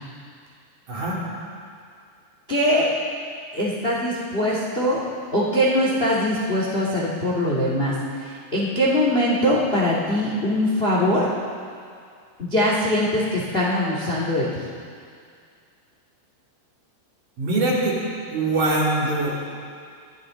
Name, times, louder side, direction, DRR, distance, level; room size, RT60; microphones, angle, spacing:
voice 1, 0.9-1.2 17.4-18.0 18.3-19.4, right 2 dB, 50° right, -5 dB, 4.4 m, -22 dB
voice 2, 2.5-2.9 3.5-5.0 5.3-7.9 8.2-11.3 12.4-14.6, left 1 dB, 30° left, -4 dB, 1.0 m, -22 dB
24.0 x 15.5 x 3.8 m, 2.2 s
omnidirectional pair, 4.9 m